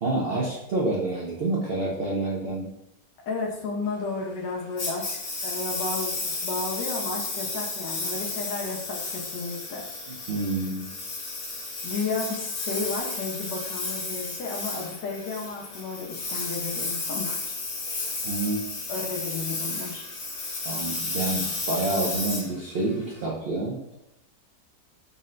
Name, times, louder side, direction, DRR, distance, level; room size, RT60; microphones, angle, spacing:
voice 1, 0.0-2.7 10.3-10.9 18.2-18.6 20.6-23.9, right 2 dB, 90° right, -5 dB, 0.5 m, -28 dB
voice 2, 3.3-9.9 11.8-17.4 18.9-20.0, left 3 dB, 85° left, -2 dB, 1.4 m, -33 dB
Engine, 4.8-23.2, left 3 dB, 60° left, 1.4 m, -33 dB
4.1 x 2.1 x 3.7 m, 0.81 s
omnidirectional pair, 1.8 m